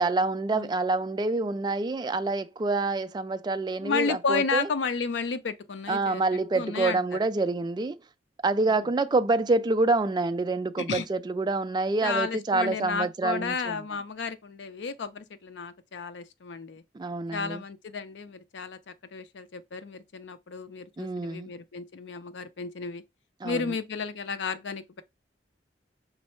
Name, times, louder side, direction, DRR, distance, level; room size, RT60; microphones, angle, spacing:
voice 1, 0.0-4.7 5.9-8.0 8.4-13.8 16.9-17.6 21.0-21.5 23.4-23.8, right 3 dB, 25° right, 0.3 m, -27 dB
voice 2, 3.8-6.2 6.5-7.0 10.8-11.0 12.0-16.8 17.3-23.0 23.4-25.0, left 5 dB, 85° left, 0.5 m, -32 dB
5.3 x 2.0 x 4.3 m
head